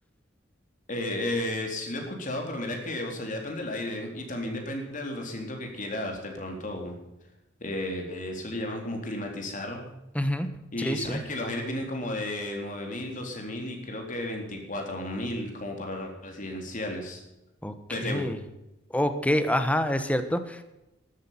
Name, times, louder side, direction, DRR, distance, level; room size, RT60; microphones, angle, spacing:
voice 1, 0.9-7.0 7.6-9.9 10.7-17.2 17.9-18.3, left 1 dB, 45° left, 2 dB, 3.9 m, -33 dB
voice 2, 10.1-10.5 10.8-11.2 17.6-17.7 18.0-18.4 18.9-20.6, equal, 5° left, 9 dB, 1.3 m, -26 dB
13.0 x 12.5 x 5.7 m, 0.94 s
head